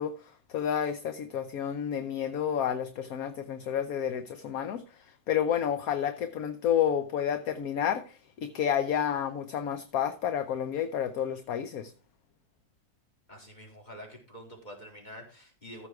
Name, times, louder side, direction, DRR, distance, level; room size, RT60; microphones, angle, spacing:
voice 1, 0.0-11.9, left 9 dB, 60° left, 1.2 m, -30 dB
voice 2, 13.3-15.9, equal, 25° left, 3.9 m, -47 dB
14.0 x 6.0 x 4.7 m
omnidirectional pair, 1.9 m